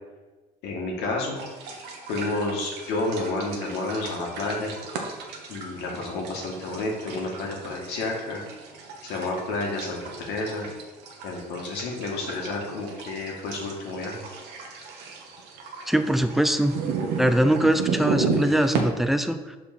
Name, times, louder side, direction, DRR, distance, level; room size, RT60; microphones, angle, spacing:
voice 1, 0.6-1.4 2.1-4.7 5.5-8.4 9.0-10.0 10.3-10.7 11.2-14.3, left 2 dB, 85° left, -1 dB, 1.8 m, -30 dB
sound 1, 1.4-18.8, right 5 dB, 85° right, 1.1 m, -34 dB
voice 2, 15.9-16.7 17.2-19.6, right 1 dB, ahead, 9 dB, 0.4 m, -22 dB
5.3 x 4.3 x 5.9 m, 1.2 s
cardioid pair, 110°, 17 cm